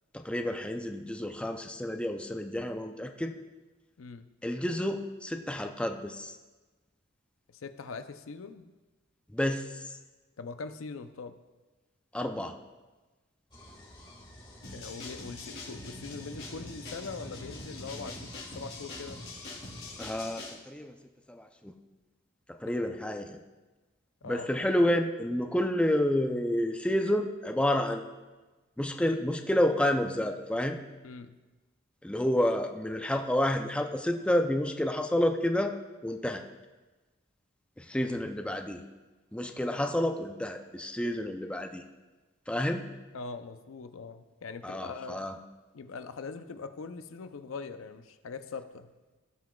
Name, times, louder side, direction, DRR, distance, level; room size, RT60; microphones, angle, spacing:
voice 1, 0.1-3.3 4.4-6.4 9.3-10.0 12.1-12.6 20.0-20.9 21.3-21.7 22.6-23.4 24.2-28.0 28.8-30.8 32.0-35.7 36.0-36.4 37.8-38.8 39.3-41.8 42.5-42.9 44.6-45.4, left 1 dB, 5° left, 5 dB, 0.4 m, -29 dB
voice 2, 7.5-8.7 10.4-11.3 14.7-18.2 18.5-19.2 24.2-24.5 31.0-31.3 43.1-45.2 45.7-48.9, left 4 dB, 90° left, 10 dB, 0.5 m, -42 dB
sound 1, 13.5-20.3, left 1 dB, 25° left, 1.7 m, -51 dB
sound 2, 14.6-20.6, left 2 dB, 55° left, 2.8 m, -43 dB
17.0 x 5.8 x 2.3 m, 1.2 s
head